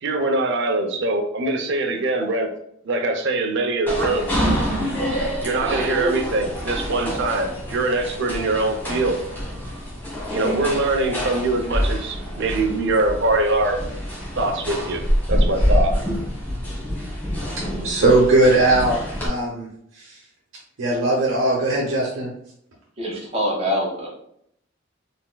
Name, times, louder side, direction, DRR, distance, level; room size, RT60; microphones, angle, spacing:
voice 1, 0.0-2.5 2.8-4.5 5.4-9.2 10.3-13.8 14.4-15.0 15.3-16.0, right 2 dB, 65° right, 4 dB, 0.7 m, -23 dB
sound 1, 3.9-19.3, equal, 10° left, 1.2 m, -26 dB
voice 2, 17.8-19.7 20.0-20.1 20.8-22.3, right 2 dB, 85° right, -4 dB, 0.9 m, -19 dB
voice 3, 23.0-24.1, equal, 30° right, -2 dB, 1.0 m, -24 dB
4.3 x 3.4 x 2.2 m, 0.72 s
head